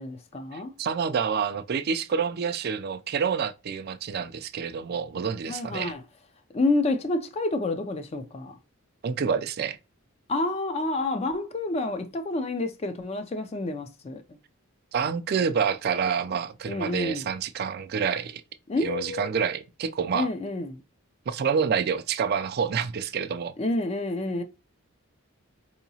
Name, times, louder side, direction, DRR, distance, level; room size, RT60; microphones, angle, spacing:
voice 1, 0.0-0.7 5.5-6.0 6.5-8.5 10.3-14.2 16.7-17.3 18.7-19.5 20.1-20.8 23.6-24.4, left 2 dB, 30° left, 0.4 m, -29 dB
voice 2, 0.5-5.9 9.0-9.8 14.9-18.4 18.8-20.3 21.3-23.5, right 6 dB, 45° right, 0.3 m, -28 dB
4.5 x 2.8 x 2.7 m
head